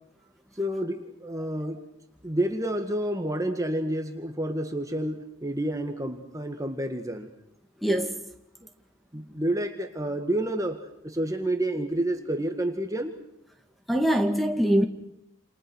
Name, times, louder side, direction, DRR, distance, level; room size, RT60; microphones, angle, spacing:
voice 1, 0.6-1.8 2.2-7.3 9.1-10.8 11.0-13.1, right 1 dB, 15° right, 1.8 m, -29 dB
voice 2, 7.8-8.2 13.9-14.8, equal, ahead, 2.1 m, -23 dB
28.5 x 28.5 x 6.3 m
head